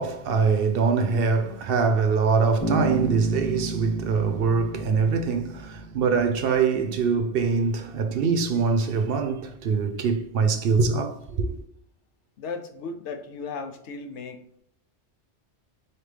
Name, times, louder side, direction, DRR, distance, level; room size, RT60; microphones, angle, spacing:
voice 1, 0.0-11.6, right 5 dB, 65° right, 0.7 m, -23 dB
Bass guitar, 2.6-6.4, right 1 dB, 15° left, 1.2 m, -31 dB
voice 2, 12.4-14.4, left 4 dB, 90° left, 1.0 m, -35 dB
4.4 x 3.3 x 3.2 m
omnidirectional pair, 1.1 m